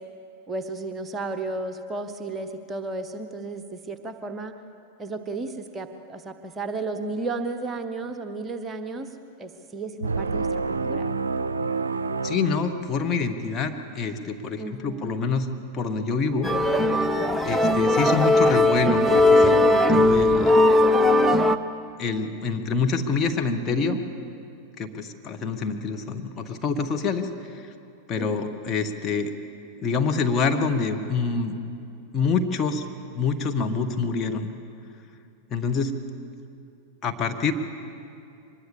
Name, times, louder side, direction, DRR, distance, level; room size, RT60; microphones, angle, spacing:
voice 1, 0.5-4.5 5.0-9.1 9.4-11.0 14.6-15.2 28.2-28.6, right 3 dB, 20° right, 7 dB, 1.2 m, -33 dB
sound 1, 10.0-13.4, right 4 dB, 75° right, 0.5 m, -28 dB
voice 2, 12.2-15.5 15.7-16.5 17.4-20.6 22.0-24.0 24.8-27.3 27.5-27.7 28.1-29.4 29.8-31.5 32.1-32.8 33.1-34.5 35.5-35.9 37.0-37.5, left 4 dB, 25° left, 4 dB, 1.6 m, -26 dB
sound 2, 16.4-21.6, left 1 dB, ahead, 0.8 m, -18 dB
24.0 x 21.5 x 7.2 m, 2.6 s
figure-of-eight pair, 90°, 0 cm